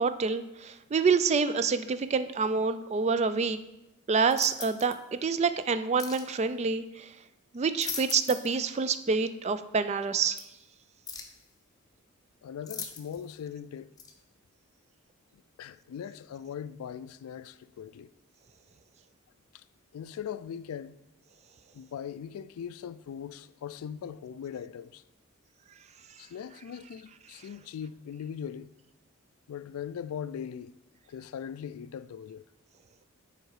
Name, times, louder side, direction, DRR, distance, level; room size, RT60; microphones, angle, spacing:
voice 1, 0.0-3.6 4.1-7.1 7.5-10.4, right 5 dB, 30° right, 0.3 m, -27 dB
sound 1, 4.3-5.0 6.0-6.3 7.5-8.6 8.9-9.0 10.4-10.5 11.1-11.4 12.7-13.3 14.0-14.1, left 5 dB, 15° left, 0.7 m, -40 dB
voice 2, 12.4-13.9 15.3-18.1 19.5-19.6 19.9-21.0 21.7-25.0 26.2-28.7 29.5-30.8 31.1-32.5, left 8 dB, 90° left, 0.3 m, -40 dB
7.9 x 4.6 x 4.8 m
head